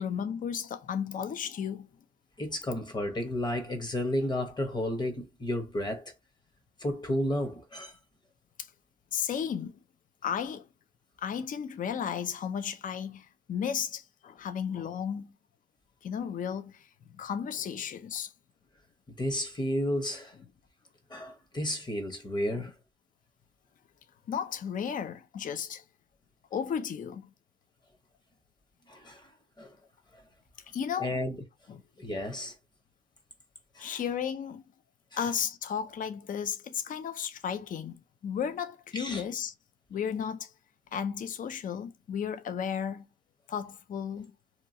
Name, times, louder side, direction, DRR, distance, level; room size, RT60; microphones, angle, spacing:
voice 1, 0.0-1.9 8.6-8.7 9.1-9.7 10.2-10.7 11.2-15.3 16.0-18.3 22.5-22.6 24.3-25.8 26.5-27.3 30.7-31.2 31.7-31.8 33.8-34.6 35.2-39.5 39.9-40.5 40.9-43.1 43.5-44.3, left 8 dB, 40° left, 0.5 m, -34 dB
voice 2, 2.4-6.1 6.8-8.0 19.2-20.4 21.1-22.7 28.9-29.7 30.1-30.2 31.0-31.4 32.0-32.5 33.7-34.0 38.9-39.2, left 1 dB, 20° left, 0.9 m, -32 dB
2.9 x 2.3 x 2.6 m
cardioid pair, 90°, 20 cm